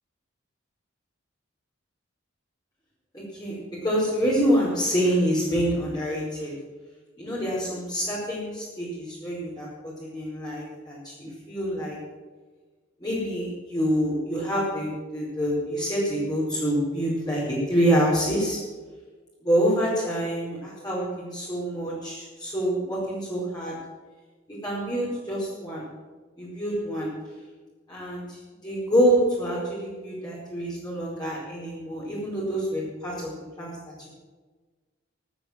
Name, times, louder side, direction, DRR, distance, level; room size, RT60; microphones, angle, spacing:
voice 1, 3.1-6.5 7.2-12.0 13.0-18.6 19.4-23.7 24.6-25.9 26.4-27.1 27.9-33.3 33.6-34.1, equal, 20° left, -7 dB, 4.9 m, -26 dB
14.5 x 11.5 x 7.4 m, 1.3 s
head